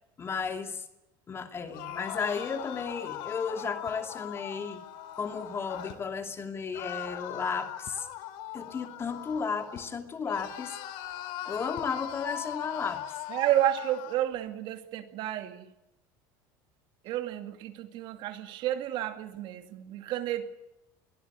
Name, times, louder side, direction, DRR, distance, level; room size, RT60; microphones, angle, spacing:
voice 1, 0.2-0.8 1.3-4.8 5.2-8.1 8.5-10.8 11.5-13.0, left 5 dB, 25° left, 7 dB, 2.7 m, -34 dB
sound 1, 1.7-6.0 6.7-9.9 10.2-14.2, left 12 dB, 65° left, 3.1 m, -40 dB
sound 2, 3.9-4.1 5.9-6.2 7.8-8.1 9.7-10.0 11.8-12.0, left 10 dB, 45° left, 2.0 m, -50 dB
voice 2, 13.3-15.7 17.0-20.5, right 12 dB, 55° right, 8 dB, 2.4 m, -31 dB
22.5 x 17.0 x 9.6 m, 0.88 s
supercardioid pair, 130°, 10 cm